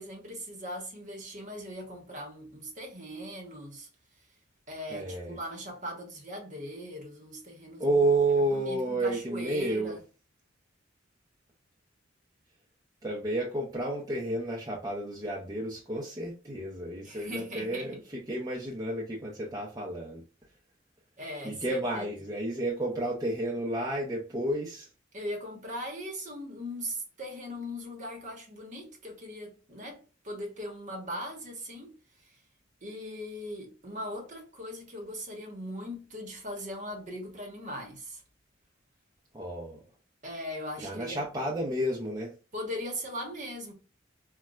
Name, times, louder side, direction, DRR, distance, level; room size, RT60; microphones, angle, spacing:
voice 1, 0.0-3.9 4.7-8.0 8.5-10.0 17.0-17.9 21.2-22.0 25.1-31.9 32.2-32.3 32.8-38.2 40.2-41.2 42.5-43.7, equal, 40° right, 0.9 m, -39 dB
voice 2, 4.9-5.4 7.8-10.0 13.0-20.2 21.4-24.9 39.3-39.8 40.8-42.3, right 1 dB, 20° right, 0.5 m, -31 dB
3.9 x 2.2 x 2.2 m
head